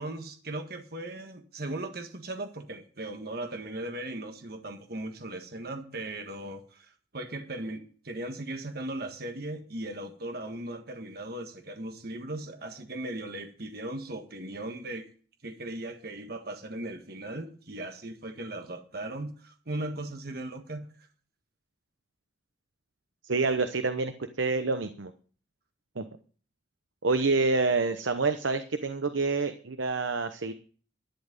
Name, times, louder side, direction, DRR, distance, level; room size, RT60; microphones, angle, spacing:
voice 1, 0.0-15.1 15.4-20.9, right 1 dB, 55° right, 5 dB, 1.5 m, -38 dB
voice 2, 23.2-24.1 24.4-25.1 26.0-26.1 27.0-30.5, right 3 dB, 85° right, 9 dB, 0.9 m, -27 dB
11.5 x 10.5 x 5.4 m, 0.42 s
head